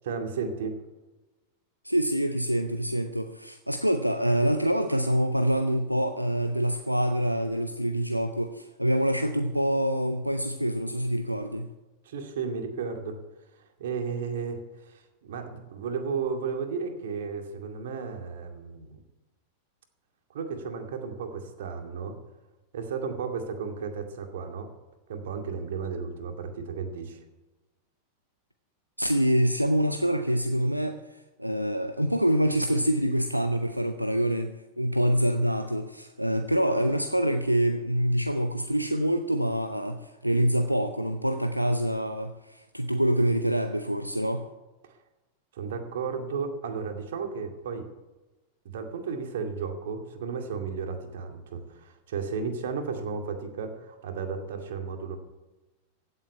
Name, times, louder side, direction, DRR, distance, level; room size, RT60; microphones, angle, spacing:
voice 1, 0.0-0.8 12.1-13.2 13.5-19.0 20.3-22.2 22.7-24.7 25.1-27.2 44.8-45.0 45.5-47.9 48.6-55.2, right 5 dB, 60° right, 5 dB, 2.3 m, -34 dB
voice 2, 1.8-11.7 29.0-44.5, equal, 90° right, 8 dB, 0.7 m, -26 dB
16.0 x 8.1 x 9.3 m, 1.1 s
figure-of-eight pair, 90°, 0 cm